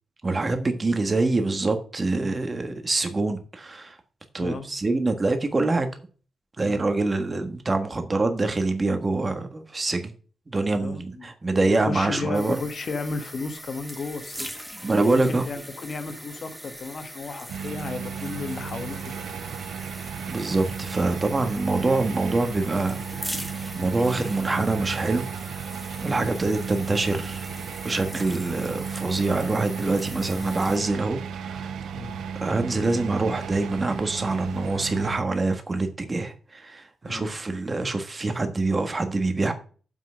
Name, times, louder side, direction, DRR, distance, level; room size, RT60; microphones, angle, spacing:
voice 1, 0.2-4.0 4.3-5.9 6.6-10.1 10.5-12.6 14.8-15.4 20.3-23.4 23.7-25.3 26.0-27.5 27.8-31.7 32.4-39.5, right 3 dB, 25° right, 1.5 m, -25 dB
voice 2, 10.7-11.3 11.6-14.5 15.0-19.0 26.1-26.2 31.9-32.2 37.1-37.4, left 4 dB, 45° left, 1.4 m, -34 dB
sound 1, 12.3-30.8, equal, ahead, 1.2 m, -41 dB
sound 2, 17.5-35.2, right 6 dB, 90° right, 0.6 m, -34 dB
7.4 x 5.9 x 6.4 m
wide cardioid pair, 135°, 0 cm